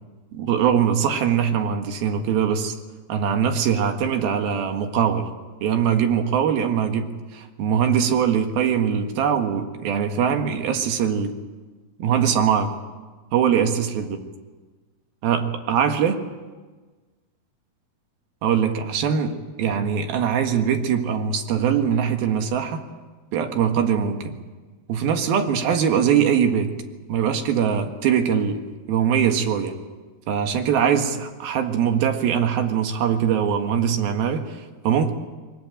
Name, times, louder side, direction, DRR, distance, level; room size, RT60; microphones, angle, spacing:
voice 1, 0.3-2.8 3.1-5.3 5.6-11.4 12.0-12.7 13.3-14.2 15.2-16.2 18.4-22.9 23.3-24.4 24.9-26.7 27.1-28.6 28.9-29.8 30.3-35.1, right 8 dB, 75° right, 5 dB, 3.5 m, -22 dB
22.5 x 20.0 x 8.8 m, 1.3 s
omnidirectional pair, 4.4 m